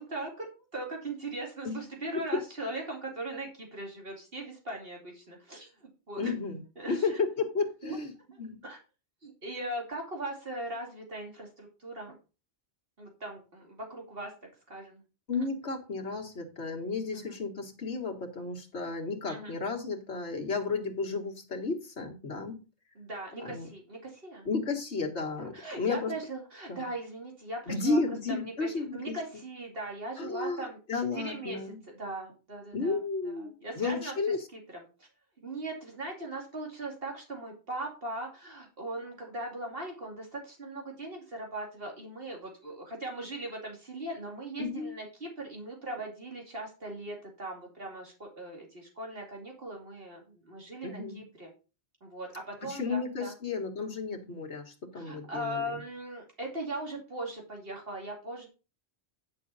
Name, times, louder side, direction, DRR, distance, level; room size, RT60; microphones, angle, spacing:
voice 1, 0.0-6.3 6.8-7.2 7.8-8.0 8.3-8.8 9.2-12.1 13.0-14.3 14.7-15.0 15.3-15.4 17.1-17.4 19.3-19.5 23.0-24.5 25.4-28.0 28.3-31.6 31.9-33.0 33.2-34.1 34.5-35.1 35.4-51.5 52.0-53.3 54.9-58.5, right 1 dB, 60° right, 0 dB, 2.8 m, -39 dB
voice 2, 6.2-6.6 6.9-8.1 8.4-8.6 15.3-22.6 23.4-23.7 24.5-26.2 26.7-26.9 27.7-29.2 30.2-31.8 32.7-34.5 44.6-44.9 50.8-51.2 52.6-55.8, left 4 dB, 85° left, 2 dB, 2.0 m, -33 dB
10.0 x 6.7 x 4.1 m, 0.32 s
omnidirectional pair, 1.1 m